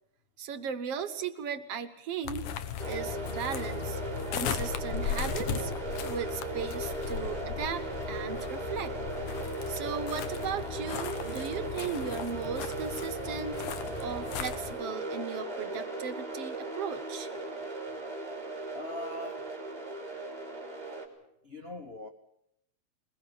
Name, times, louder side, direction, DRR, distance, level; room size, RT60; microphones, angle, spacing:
voice 1, 0.4-2.5 2.9-4.0 4.3-5.7 6.1-9.0 9.7-13.6 14.0-17.3, right 7 dB, 60° right, 1.9 m, -37 dB
sound 1, 2.2-14.7, left 7 dB, 85° left, 2.7 m, -37 dB
sound 2, 2.8-21.1, right 2 dB, 15° right, 3.2 m, -37 dB
voice 2, 18.6-19.5 21.4-22.1, left 2 dB, 60° left, 0.6 m, -41 dB
21.5 x 21.0 x 7.0 m
omnidirectional pair, 3.4 m